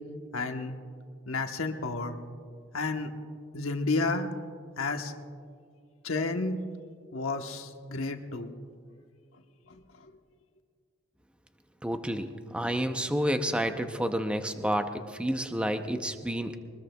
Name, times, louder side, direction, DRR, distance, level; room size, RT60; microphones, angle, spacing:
voice 1, 0.3-0.7 1.3-2.2 2.7-3.1 3.5-4.3 4.8-5.1 6.0-6.6 7.1-8.5, left 3 dB, 90° left, 5 dB, 1.1 m, -31 dB
voice 2, 11.8-16.6, equal, 5° right, 7 dB, 0.6 m, -30 dB
23.0 x 20.0 x 2.3 m, 2.2 s
head